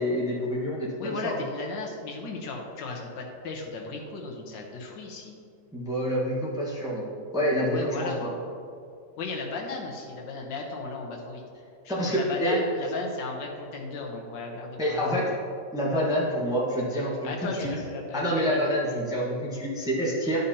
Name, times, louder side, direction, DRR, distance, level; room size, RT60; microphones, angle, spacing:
voice 1, 0.0-1.4 5.7-8.3 11.9-12.6 14.8-15.3 15.7-17.2 17.5-17.7 18.1-20.4, equal, 5° right, -5 dB, 1.0 m, -27 dB
voice 2, 1.0-5.4 7.7-8.2 9.2-11.4 12.0-15.4 17.2-18.6, left 3 dB, 75° left, 0 dB, 1.6 m, -35 dB
12.0 x 5.3 x 2.8 m, 2.4 s
omnidirectional pair, 2.0 m